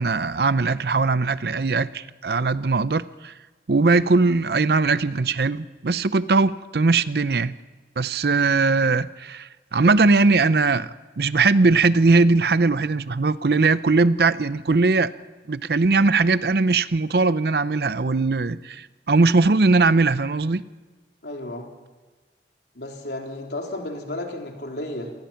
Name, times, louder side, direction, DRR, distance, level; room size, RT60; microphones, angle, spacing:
voice 1, 0.0-3.3 3.7-7.5 8.0-15.1 15.5-20.6, right 3 dB, 60° right, 16 dB, 0.6 m, -20 dB
voice 2, 21.2-21.7 22.8-25.1, left 1 dB, 70° left, 1 dB, 3.6 m, -33 dB
27.0 x 19.0 x 5.8 m, 1.3 s
head